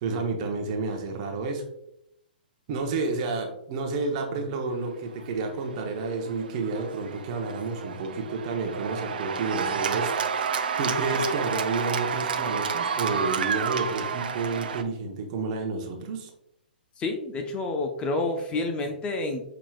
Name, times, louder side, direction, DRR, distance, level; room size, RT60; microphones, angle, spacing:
voice 1, 0.0-1.6 2.7-10.1 10.8-16.3, right 3 dB, 45° right, 3 dB, 0.9 m, -30 dB
Cheering / Applause, 5.2-14.8, right 6 dB, 70° right, 0.4 m, -30 dB
voice 2, 17.0-19.5, left 2 dB, 20° left, 5 dB, 0.5 m, -29 dB
5.8 x 3.0 x 2.3 m, 0.76 s
hypercardioid pair, 120°, 5 cm